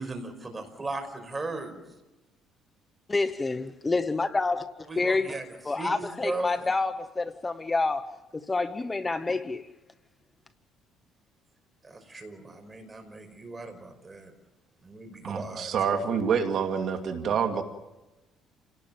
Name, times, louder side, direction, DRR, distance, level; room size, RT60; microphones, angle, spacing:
voice 1, 0.0-1.8 4.9-6.7 11.8-14.3 14.8-16.1, right 2 dB, 20° right, 5.3 m, -37 dB
voice 2, 3.1-4.7 5.0-5.4 5.7-8.1 8.3-9.6, left 3 dB, 20° left, 0.9 m, -28 dB
voice 3, 15.2-17.6, right 6 dB, 55° right, 2.3 m, -27 dB
28.5 x 18.5 x 7.7 m
cardioid pair, 125°, 0 cm